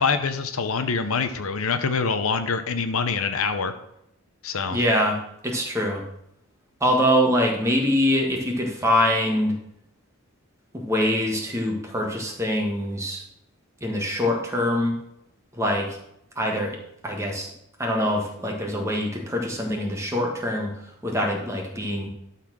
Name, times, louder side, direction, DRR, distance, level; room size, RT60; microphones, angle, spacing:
voice 1, 0.0-3.7 4.4-4.8, left 5 dB, 70° left, 9 dB, 0.8 m, -25 dB
voice 2, 4.7-6.0 6.8-9.6 10.7-13.2 13.8-14.9 15.5-16.0 16.3-16.8 17.0-17.5 17.8-20.7 21.0-22.1, equal, 15° right, 0 dB, 1.5 m, -24 dB
12.0 x 4.2 x 6.2 m, 0.78 s
head